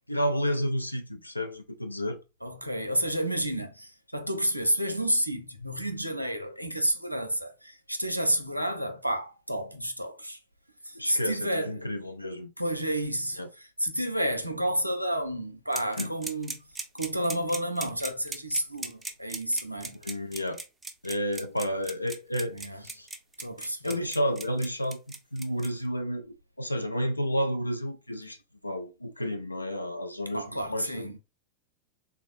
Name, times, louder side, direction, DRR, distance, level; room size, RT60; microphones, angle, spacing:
voice 1, 0.1-2.2 10.9-12.5 13.4-13.5 16.0-16.1 19.9-20.6 21.0-22.5 22.8-23.1 23.8-25.0 25.3-28.4 28.6-31.2, equal, 85° left, 0.4 m, -31 dB
voice 2, 2.4-10.4 10.8-11.9 12.6-16.6 16.9-20.0 22.5-22.8 23.4-23.9 30.3-31.2, right 1 dB, 90° right, 0.4 m, -30 dB
sound 1, 15.7-25.7, right 2 dB, 10° right, 0.4 m, -37 dB
3.4 x 2.2 x 2.5 m
figure-of-eight pair, 90°, 0 cm